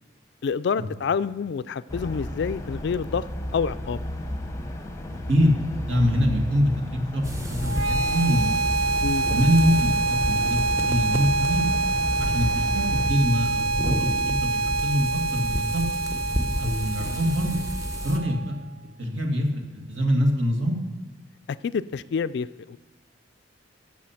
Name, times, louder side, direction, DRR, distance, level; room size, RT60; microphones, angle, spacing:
voice 1, 0.4-3.2 3.5-4.0 9.0-9.3 21.6-22.8, left 6 dB, 55° left, 16 dB, 0.3 m, -27 dB
sound 1, 1.9-13.1, left 1 dB, 15° left, 0.7 m, -33 dB
voice 2, 5.3-8.6 9.3-11.6 12.2-15.8 16.6-17.6 18.0-18.5 19.0-20.8, equal, 70° right, 2 dB, 1.9 m, -24 dB
sound 2, 7.2-18.2, equal, 15° right, 0.9 m, -31 dB
sound 3, 7.6-18.6, right 3 dB, 85° right, 0.8 m, -26 dB
14.0 x 7.3 x 5.8 m, 1.2 s
head